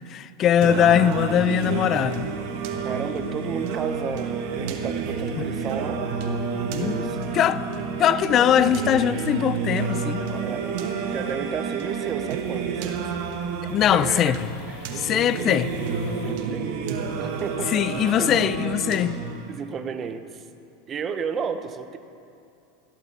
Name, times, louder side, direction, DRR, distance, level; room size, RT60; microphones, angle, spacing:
voice 1, 0.0-2.3 5.4-5.5 6.7-7.6 8.0-10.3 13.6-14.4 15.0-15.7 17.7-19.2, left 10 dB, 40° left, 0.5 m, -21 dB
Singing, 0.6-19.6, right 5 dB, 65° right, 1.3 m, -29 dB
voice 2, 2.8-6.1 6.7-7.2 8.1-8.5 10.3-13.4 13.9-14.4 14.7-15.2 16.2-18.3 19.5-20.4 20.9-22.0, right 6 dB, 30° right, 0.7 m, -33 dB
sound 1, 7.4-16.3, left 3 dB, 80° left, 2.2 m, -46 dB
14.5 x 13.0 x 4.2 m
supercardioid pair, 120°, 0 cm